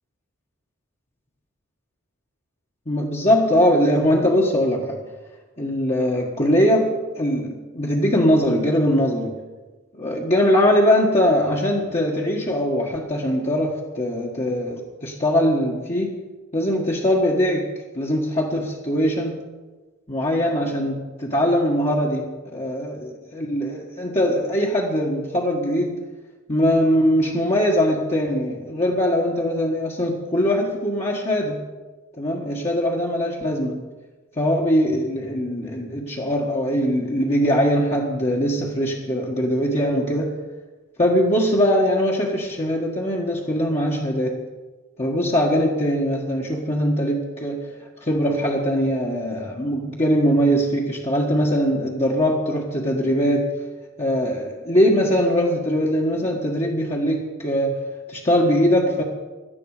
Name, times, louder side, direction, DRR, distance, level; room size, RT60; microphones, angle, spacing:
voice 1, 2.9-5.0 5.6-9.4 9.9-16.2 16.5-17.7 17.9-19.4 20.1-26.0 26.5-31.6 32.2-33.9 34.4-40.4 41.0-44.4 45.0-53.5 54.0-57.8 58.1-59.0, equal, 30° left, -3 dB, 1.6 m, -21 dB
17.5 x 12.5 x 5.0 m, 1.2 s
head